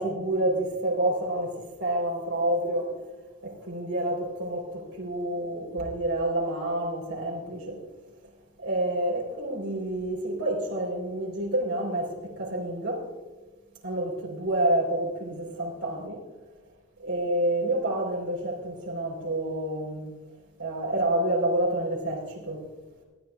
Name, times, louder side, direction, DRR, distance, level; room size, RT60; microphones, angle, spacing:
voice 1, 0.0-2.9 3.4-7.8 8.6-13.1 13.8-16.2 17.0-20.1 20.6-22.6, right 1 dB, 70° right, 3.9 m, -28 dB
19.0 x 12.5 x 2.4 m
head